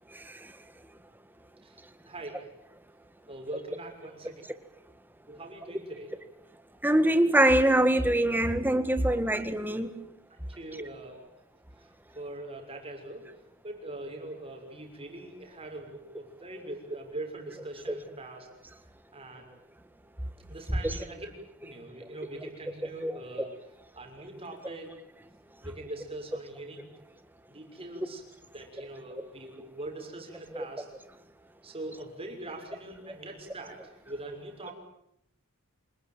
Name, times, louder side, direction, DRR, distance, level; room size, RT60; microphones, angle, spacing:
voice 1, 2.1-2.5 3.3-4.4 5.3-6.2 9.1-9.2 10.3-11.2 12.1-13.3 13.6-18.5 19.1-19.5 20.5-21.3 21.6-23.5 23.9-25.0 25.6-26.9 27.5-28.2 28.5-30.9 31.6-34.7, right 2 dB, 25° right, 6.3 m, -42 dB
voice 2, 6.8-9.9 17.9-18.0 23.0-23.1 23.4-23.5 30.5-30.6, right 1 dB, 10° right, 1.7 m, -23 dB
27.5 x 19.5 x 9.2 m
head